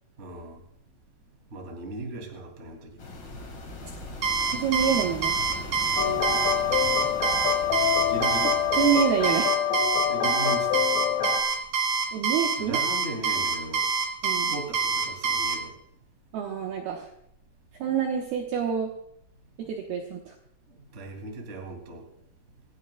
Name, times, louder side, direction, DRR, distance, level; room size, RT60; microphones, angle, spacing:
voice 1, 0.2-0.6 1.5-3.0 7.8-8.6 10.1-10.8 12.5-13.9 14.5-15.7 20.9-22.1, right 2 dB, 25° right, 1 dB, 1.6 m, -37 dB
sound 1, 3.0-9.4, left 2 dB, 75° left, 1.0 m, -40 dB
Alarm, 4.2-15.6, right 5 dB, 55° right, 2.0 m, -26 dB
voice 2, 4.5-5.4 8.8-9.5 12.1-12.8 14.2-14.5 16.3-17.1 17.8-18.9 19.6-20.3, right 8 dB, 75° right, 1 dB, 2.4 m, -27 dB
sound 2, 6.0-11.4, left 9 dB, 55° left, 2.0 m, -26 dB
27.5 x 12.0 x 2.3 m, 0.73 s
omnidirectional pair, 5.8 m